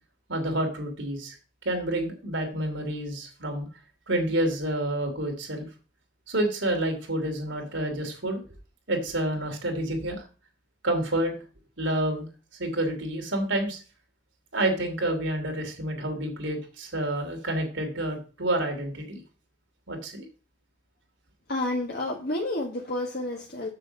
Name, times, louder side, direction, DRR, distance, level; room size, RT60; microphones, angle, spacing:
voice 1, 0.3-1.4 1.6-3.7 4.1-5.7 6.3-8.4 8.9-10.2 10.8-11.3 11.8-12.3 12.6-13.8 14.5-19.2 19.9-20.2, right 1 dB, 85° right, 3 dB, 2.8 m, -28 dB
voice 2, 21.5-23.7, left 2 dB, 55° left, -1 dB, 1.5 m, -30 dB
7.4 x 6.7 x 5.3 m, 0.35 s
head